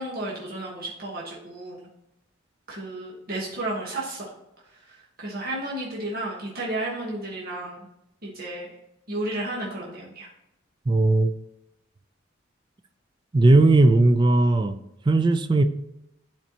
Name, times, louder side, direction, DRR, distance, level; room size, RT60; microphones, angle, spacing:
voice 1, 0.0-1.9 2.7-4.3 4.9-7.9 8.2-8.7 9.1-10.3, right 1 dB, 50° right, -4 dB, 1.3 m, -32 dB
voice 2, 10.9-11.3 13.3-14.7 15.1-15.6, right 2 dB, 25° right, 10 dB, 0.4 m, -17 dB
9.8 x 4.4 x 2.9 m, 0.87 s
head